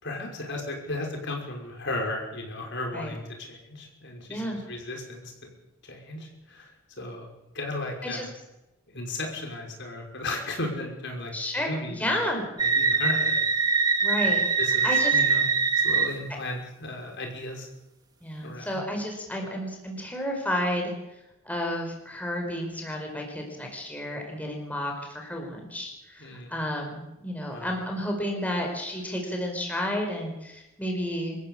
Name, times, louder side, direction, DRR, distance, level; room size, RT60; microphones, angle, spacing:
voice 1, 0.0-3.2 3.5-5.3 5.8-6.7 7.0-7.3 7.5-8.3 8.9-12.2 12.6-13.5 14.2-14.3 14.6-15.4 15.8-17.7 18.4-18.8 26.2-26.5 27.5-27.7, left 2 dB, 60° left, 1 dB, 5.6 m, -35 dB
voice 2, 4.3-4.6 8.0-8.2 11.3-12.4 14.0-14.4 14.8-15.1 18.2-20.9 21.4-31.4, left 1 dB, 5° left, 1 dB, 4.9 m, -31 dB
sound 1, 12.6-16.1, right 5 dB, 20° right, 2.0 m, -23 dB
25.5 x 14.0 x 8.7 m, 0.95 s
head